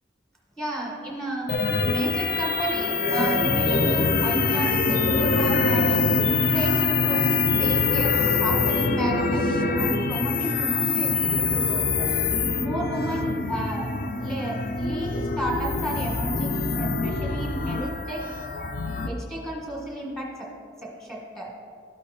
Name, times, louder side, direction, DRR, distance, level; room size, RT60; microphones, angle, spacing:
voice 1, 0.6-1.5 1.9-6.1 6.5-12.2 12.6-13.9 14.2-18.3 19.1-20.5 20.8-21.5, right 1 dB, ahead, -3 dB, 1.6 m, -32 dB
sound 1, 1.5-19.1, left 4 dB, 50° left, 0.6 m, -24 dB
12.5 x 4.9 x 4.3 m, 2.1 s
head